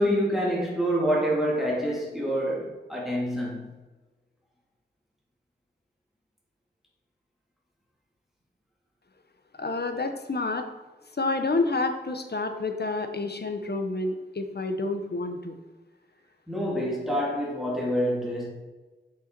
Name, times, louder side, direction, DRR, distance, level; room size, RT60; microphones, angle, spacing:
voice 1, 0.0-3.7 16.5-18.5, equal, ahead, 2.4 m, -27 dB
voice 2, 9.6-10.6 11.2-15.5, left 3 dB, 60° left, 0.9 m, -29 dB
6.4 x 5.7 x 4.5 m
wide cardioid pair, 55°, 19 cm